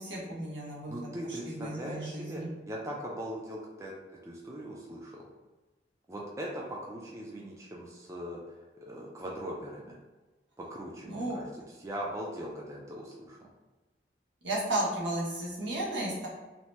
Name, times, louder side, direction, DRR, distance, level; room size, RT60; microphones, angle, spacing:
voice 1, 0.0-0.9 1.2-2.5 11.0-11.4 14.4-16.3, right 1 dB, 90° right, -6 dB, 1.0 m, -34 dB
voice 2, 0.9-3.9 4.2-5.3 6.1-8.4 8.8-10.0 10.6-13.5, right 1 dB, 15° right, -3 dB, 0.3 m, -40 dB
2.8 x 2.1 x 3.1 m, 1.2 s
head